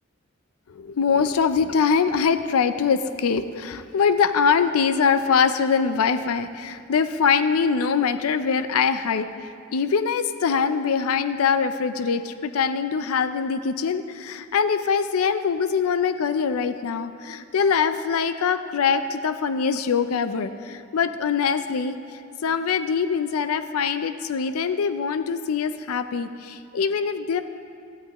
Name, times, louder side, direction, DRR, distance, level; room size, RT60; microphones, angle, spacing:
voice 1, 0.7-9.3 9.7-22.0 22.4-27.4, left 6 dB, 85° left, 11 dB, 0.5 m, -23 dB
17.0 x 12.0 x 3.0 m, 2.4 s
head